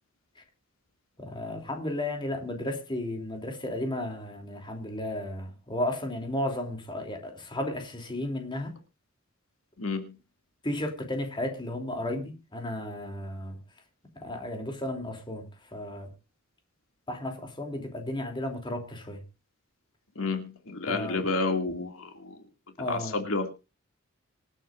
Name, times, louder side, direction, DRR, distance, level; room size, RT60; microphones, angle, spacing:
voice 1, 1.2-8.8 10.6-13.6 14.1-16.1 17.1-19.2 20.9-21.2 22.8-23.2, left 1 dB, 25° left, 3.1 m, -34 dB
voice 2, 9.8-10.1 20.2-22.4 22.9-23.5, left 3 dB, 75° left, 2.6 m, -30 dB
26.0 x 9.0 x 2.6 m
head